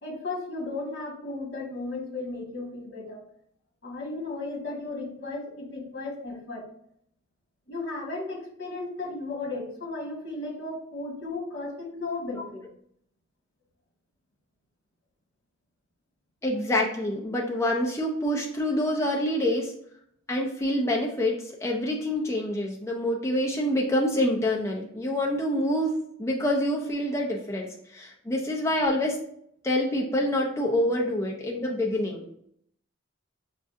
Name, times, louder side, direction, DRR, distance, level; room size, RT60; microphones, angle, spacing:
voice 1, 0.0-3.2 3.8-6.7 7.7-12.6, left 2 dB, 50° left, -4 dB, 1.7 m, -35 dB
voice 2, 16.4-19.7 20.3-29.2 29.6-32.2, left 1 dB, 15° left, -2 dB, 0.5 m, -26 dB
6.5 x 2.4 x 2.6 m, 0.67 s
head